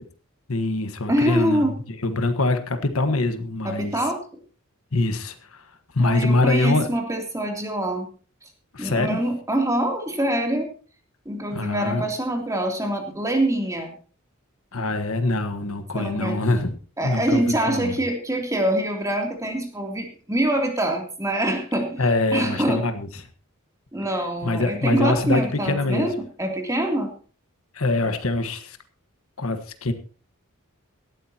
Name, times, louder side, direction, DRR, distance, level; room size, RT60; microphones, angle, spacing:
voice 1, 0.5-1.7 2.0-4.0 4.9-5.6 5.9-6.9 8.7-9.2 11.5-12.0 14.7-16.7 17.0-17.9 22.0-23.1 24.4-26.1 27.7-28.8 29.4-29.9, left 2 dB, 75° left, 8 dB, 1.4 m, -24 dB
voice 2, 1.1-1.8 3.6-4.2 6.0-8.1 8.8-10.7 11.2-13.9 15.9-16.4 17.0-22.8 23.9-27.1, right 1 dB, 15° right, 2 dB, 3.0 m, -25 dB
18.0 x 13.0 x 2.9 m, 0.39 s
head